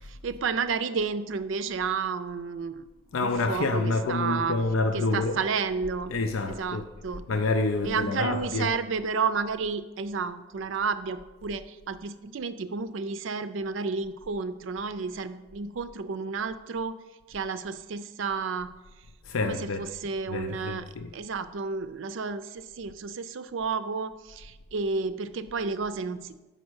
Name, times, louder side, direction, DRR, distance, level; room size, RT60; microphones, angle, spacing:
voice 1, 0.0-2.9 3.2-4.6 4.9-6.1 6.5-7.2 7.8-17.0 17.3-18.7 19.4-20.8 21.1-26.4, right 5 dB, 70° right, 0.4 m, -31 dB
voice 2, 3.1-5.4 6.1-6.8 7.3-8.7 19.2-19.9 20.3-21.1, left 3 dB, 80° left, 0.5 m, -28 dB
7.3 x 5.4 x 6.2 m
head